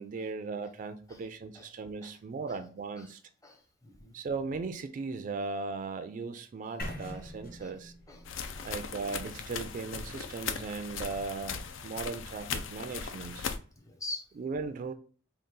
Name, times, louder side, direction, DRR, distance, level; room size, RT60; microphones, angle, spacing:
voice 1, 0.0-3.2 4.1-7.9 8.6-13.5 14.4-14.9, right 4 dB, 45° right, 0.3 m, -37 dB
voice 2, 3.4-4.1 6.6-6.7 7.1-7.2 7.6-7.8 8.1-8.3 8.5-8.7 13.8-14.2, left 2 dB, 20° left, 0.6 m, -44 dB
sound 1, 6.8-10.8, left 1 dB, 50° left, 1.0 m, -45 dB
sound 2, 8.2-13.6, left 6 dB, 80° left, 0.4 m, -38 dB
3.8 x 2.3 x 3.7 m
head